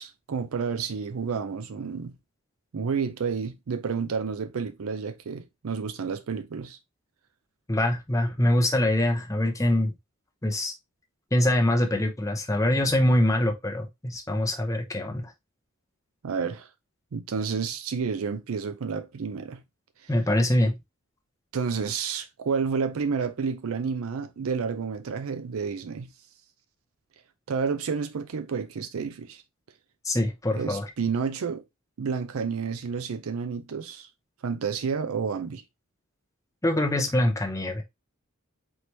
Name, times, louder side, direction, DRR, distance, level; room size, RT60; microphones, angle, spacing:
voice 1, 0.0-2.1 2.7-6.8 16.2-16.7 17.1-19.6 20.0-20.1 21.5-26.1 27.5-29.4 30.5-31.6 32.0-34.1 34.4-35.6, right 5 dB, 80° right, 0.5 m, -30 dB
voice 2, 7.7-9.9 10.4-10.7 11.3-15.3 20.1-20.7 30.0-30.9 36.6-37.8, left 1 dB, 15° left, 0.7 m, -24 dB
4.4 x 3.0 x 3.2 m
head